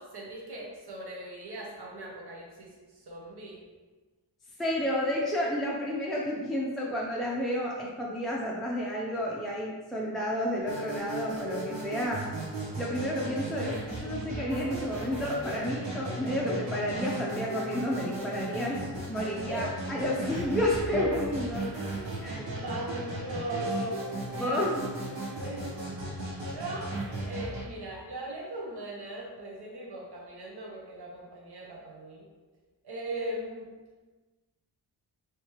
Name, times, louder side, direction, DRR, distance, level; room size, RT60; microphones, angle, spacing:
voice 1, 0.0-3.6 18.7-18.8 19.3-19.7 20.0-20.3 21.0-21.1 21.9-24.7 25.4-25.7 26.4-26.9 27.2-32.3 32.8-33.7, right 1 dB, 60° right, -2 dB, 0.8 m, -39 dB
voice 2, 4.6-12.2 12.8-21.7 22.2-22.5 24.4-24.9, equal, ahead, -5 dB, 0.4 m, -31 dB
sound 1, 10.6-27.6, right 2 dB, 90° right, 1.2 m, -36 dB
3.2 x 3.1 x 3.0 m, 1.3 s
cardioid pair, 75°, 44 cm